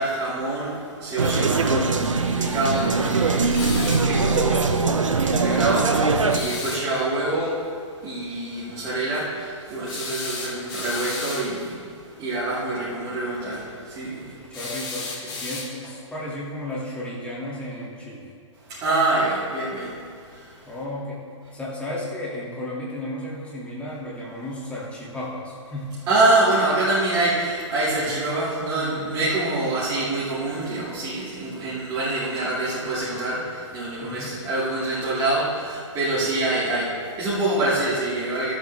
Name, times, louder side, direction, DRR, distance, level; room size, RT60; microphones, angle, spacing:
voice 1, 0.0-14.6 18.7-20.7 26.1-38.5, right 2 dB, 25° right, -10 dB, 2.4 m, -26 dB
sound 1, 1.2-6.4, right 4 dB, 85° right, 0.9 m, -21 dB
sound 2, 3.5-4.1 6.3-6.8 9.8-11.5 14.5-16.0, left 3 dB, 25° left, 1.7 m, -33 dB
voice 2, 14.2-18.3 20.6-21.2 21.5-25.9 28.1-28.2 34.0-34.3, left 1 dB, 5° left, -6 dB, 2.2 m, -34 dB
14.0 x 7.8 x 3.4 m, 2.2 s
hypercardioid pair, 135°, 16 cm